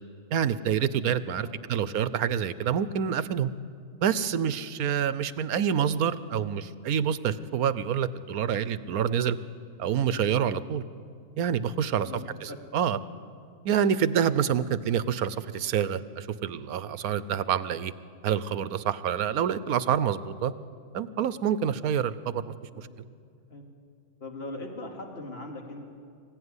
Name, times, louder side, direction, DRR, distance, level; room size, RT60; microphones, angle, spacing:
voice 1, 0.3-3.5 4.0-9.4 9.8-10.8 11.4-12.1 12.4-13.0 13.6-17.9 18.2-20.5 20.9-22.9, right 8 dB, 85° right, 14 dB, 1.3 m, -27 dB
voice 2, 1.3-1.8 11.9-12.6 22.7-23.1 23.5-23.7 24.2-25.9, left 2 dB, 45° left, 1 dB, 2.6 m, -41 dB
25.5 x 16.0 x 9.8 m, 2.3 s
omnidirectional pair, 1.5 m